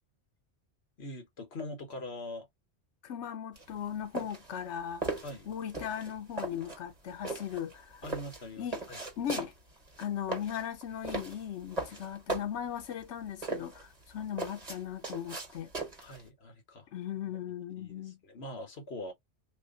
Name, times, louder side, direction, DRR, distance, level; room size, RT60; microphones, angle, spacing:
voice 1, 1.0-2.5 5.2-5.5 8.0-9.1 16.0-16.9 17.3-17.4 17.8-19.1, left 1 dB, 65° left, 1.6 m, -43 dB
voice 2, 3.0-5.0 5.5-8.0 8.6-8.8 9.2-9.5 10.0-15.7 16.9-18.2, left 9 dB, 85° left, 1.0 m, -38 dB
sound 1, 3.6-16.2, right 3 dB, 35° right, 1.6 m, -39 dB
3.1 x 2.7 x 3.7 m
omnidirectional pair, 1.1 m